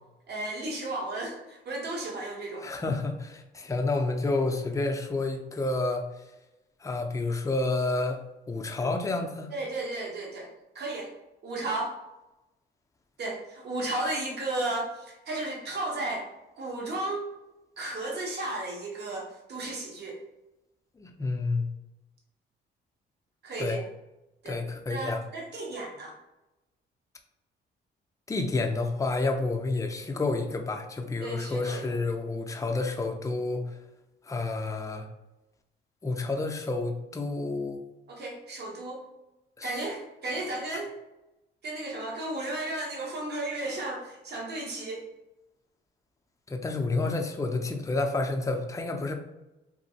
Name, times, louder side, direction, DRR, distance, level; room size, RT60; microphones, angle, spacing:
voice 1, 0.3-2.8 9.5-10.5 10.7-11.1 11.4-12.0 13.2-16.3 16.6-17.3 17.8-20.2 23.4-23.8 24.4-24.6 24.9-26.2 31.2-31.9 38.1-39.0 39.6-40.9 41.6-45.1, right 2 dB, 55° right, -1 dB, 0.9 m, -34 dB
voice 2, 2.6-6.0 6.8-8.2 8.5-9.5 21.0-21.7 23.6-23.8 24.5-25.2 28.3-33.8 34.3-35.1 36.0-37.8 39.6-39.8 40.7-40.8 46.5-49.1, left 3 dB, 15° left, 3 dB, 0.4 m, -29 dB
2.9 x 2.6 x 2.7 m, 0.97 s
cardioid pair, 90°, 20 cm